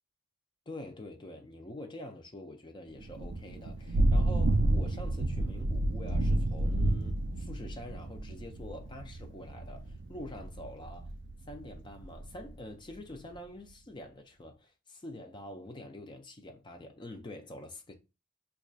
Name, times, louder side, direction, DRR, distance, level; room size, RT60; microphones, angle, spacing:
voice 1, 0.7-11.1 11.5-17.9, left 1 dB, 25° left, 0.4 m, -46 dB
Thunder / Rain, 3.0-12.5, right 1 dB, 65° right, 0.4 m, -30 dB
4.9 x 2.3 x 2.4 m
head